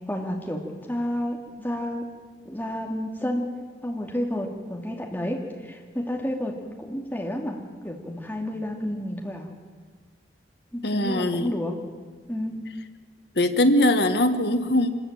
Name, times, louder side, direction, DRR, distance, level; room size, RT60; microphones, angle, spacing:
voice 1, 0.1-2.1 2.4-9.5 10.7-11.8 12.3-12.7, left 1 dB, 10° left, 0 dB, 2.5 m, -31 dB
voice 2, 10.8-11.5 13.4-14.9, left 1 dB, 65° left, 8 dB, 1.3 m, -21 dB
25.5 x 13.5 x 9.1 m, 1.6 s
head